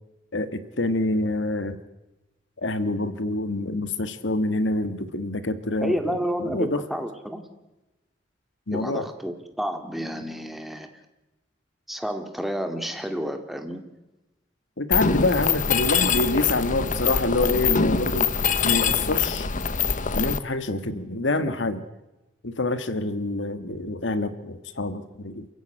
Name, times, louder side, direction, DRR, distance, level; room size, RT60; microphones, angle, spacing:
voice 1, 0.3-1.8 2.6-6.8 8.7-9.1 14.8-18.3 18.6-19.5 20.1-21.8 22.4-25.5, left 2 dB, 80° left, 11 dB, 1.6 m, -26 dB
voice 2, 5.8-7.5 8.7-10.9 11.9-13.8 15.1-15.3 21.4-21.6, equal, ahead, 6 dB, 2.2 m, -30 dB
Mechanisms, 14.9-20.4, left 6 dB, 45° left, 1.0 m, -24 dB
28.0 x 15.0 x 9.0 m, 1.0 s
head